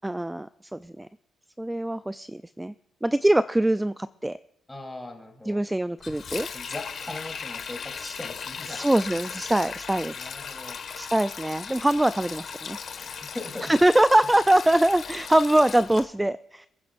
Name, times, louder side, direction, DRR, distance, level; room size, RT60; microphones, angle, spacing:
voice 1, 0.0-1.1 1.6-2.7 3.0-4.4 5.5-6.5 8.7-10.3 11.0-12.8 13.6-16.7, right 1 dB, 10° right, 13 dB, 0.4 m, -23 dB
voice 2, 4.7-5.6 6.5-8.8 10.1-10.8 13.0-13.7, left 2 dB, 10° left, 1 dB, 3.5 m, -39 dB
Sink (filling or washing), 6.0-16.0, left 6 dB, 55° left, 1.7 m, -37 dB
28.0 x 9.6 x 2.6 m, 0.77 s
cardioid pair, 90°, 0 cm